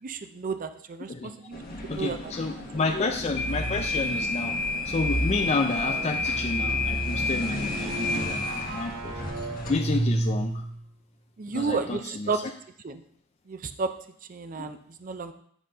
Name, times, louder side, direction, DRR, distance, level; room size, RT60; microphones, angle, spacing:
voice 1, 0.0-2.3 11.4-12.5 12.8-13.0 13.5-13.9 14.3-15.3, right 4 dB, 45° right, 9 dB, 0.5 m, -32 dB
sound 1, 1.5-10.1, left 2 dB, 50° left, 1.6 m, -31 dB
voice 2, 1.9-4.6 4.8-9.1 9.7-10.6 11.5-12.3 14.6-14.7, left 3 dB, 35° left, 6 dB, 0.4 m, -30 dB
sound 2, 3.0-4.0 4.8-10.8, right 1 dB, 75° right, 2.1 m, -32 dB
9.8 x 3.9 x 5.4 m, 0.64 s
head